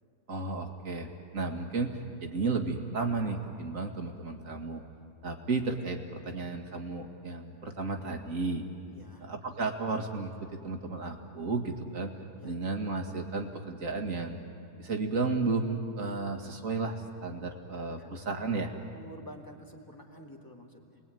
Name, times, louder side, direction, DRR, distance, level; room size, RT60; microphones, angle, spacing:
voice 1, 0.3-4.8 5.2-8.6 9.2-12.1 12.4-14.4 14.8-18.7, right 3 dB, 50° right, 4 dB, 2.3 m, -33 dB
voice 2, 8.9-9.3 12.3-12.6 17.9-21.0, equal, 10° left, 1 dB, 2.4 m, -50 dB
29.5 x 21.0 x 9.2 m, 2.5 s
omnidirectional pair, 1.8 m